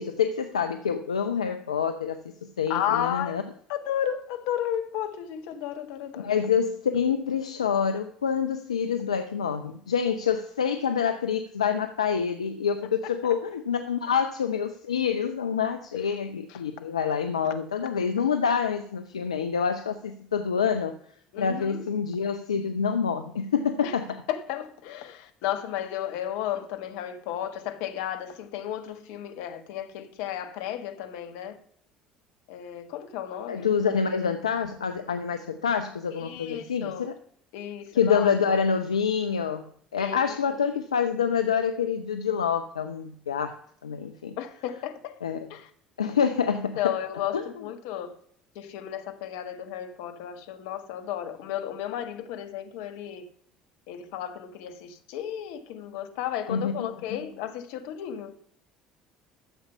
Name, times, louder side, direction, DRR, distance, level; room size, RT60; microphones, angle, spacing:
voice 1, 0.0-3.4 6.2-20.9 21.4-24.2 33.5-37.1 37.9-39.7 39.9-43.6 43.8-44.3 45.2-45.5 46.0-46.9 47.3-47.4 56.5-56.7, left 7 dB, 90° left, 0.6 m, -27 dB
voice 2, 2.7-3.4 3.7-6.3 13.0-13.3 16.5-16.6 21.3-21.8 23.8-24.0 24.3-31.6 32.5-33.7 33.9-34.0 36.1-37.1 37.5-38.3 40.0-40.4 44.4-45.2 45.5-45.7 46.8-48.1 48.5-53.3 53.9-58.3, left 10 dB, 70° left, 1.4 m, -33 dB
12.5 x 7.2 x 5.6 m
hypercardioid pair, 65°, 3 cm